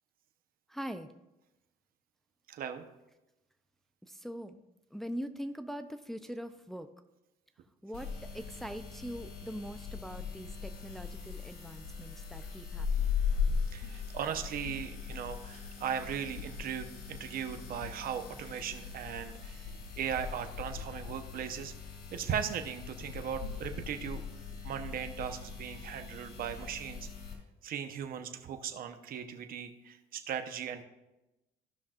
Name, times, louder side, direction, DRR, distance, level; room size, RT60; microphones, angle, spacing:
voice 1, 0.7-1.1 4.0-4.6 4.9-6.9 7.8-13.2, equal, ahead, 8 dB, 0.5 m, -42 dB
voice 2, 2.5-2.9 13.7-19.7 20.0-21.7 22.1-24.2 24.6-27.1 27.6-30.8, right 8 dB, 60° right, 7 dB, 1.0 m, -38 dB
sound 1, 7.9-27.3, left 6 dB, 90° left, 2.8 m, -39 dB
15.5 x 5.9 x 2.5 m, 0.97 s
cardioid pair, 110°, 17 cm